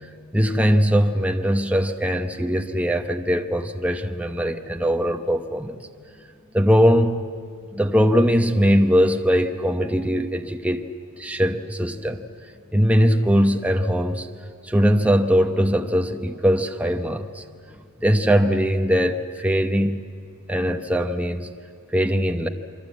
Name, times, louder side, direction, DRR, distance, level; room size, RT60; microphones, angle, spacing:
voice 1, 0.3-5.8 6.5-7.2 7.7-10.8 11.2-12.3 12.7-14.3 14.6-17.4 18.0-20.0 20.5-21.5 21.9-22.5, equal, 5° right, 5 dB, 0.9 m, -20 dB
28.0 x 23.5 x 8.4 m, 2.2 s
head